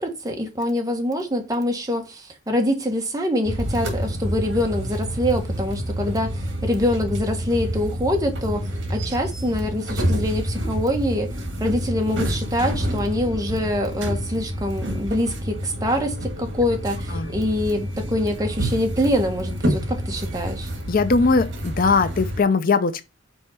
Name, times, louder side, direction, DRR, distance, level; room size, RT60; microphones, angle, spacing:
voice 1, 0.0-20.7, left 1 dB, 20° right, 1.4 m, -25 dB
sound 1, 3.5-22.4, equal, 70° right, 1.8 m, -28 dB
voice 2, 20.9-23.0, left 4 dB, 50° left, 0.5 m, -20 dB
5.4 x 4.2 x 5.7 m
head